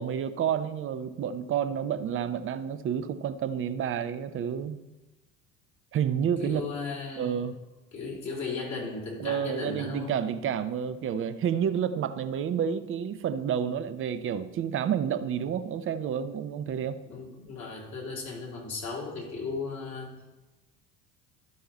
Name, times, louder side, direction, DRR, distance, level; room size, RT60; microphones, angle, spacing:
voice 1, 0.0-4.8 5.9-6.6 7.2-7.6 9.2-17.0, right 8 dB, 30° right, 11 dB, 0.7 m, -30 dB
voice 2, 6.4-7.4 7.9-10.1 16.7-16.8 17.1-20.1, left 4 dB, 45° left, -3 dB, 3.6 m, -36 dB
12.0 x 5.6 x 4.2 m, 1.1 s
figure-of-eight pair, 65°, 39 cm